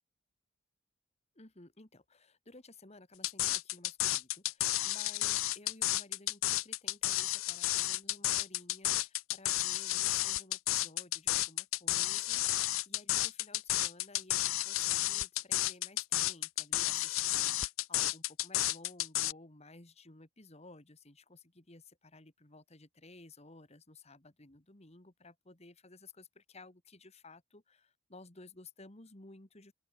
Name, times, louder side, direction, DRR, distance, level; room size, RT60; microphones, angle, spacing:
voice 1, 1.4-29.7, left 2 dB, 30° left, 2.0 m, -56 dB
sound 1, 3.2-19.3, left 16 dB, 75° left, 0.6 m, -32 dB
open air
head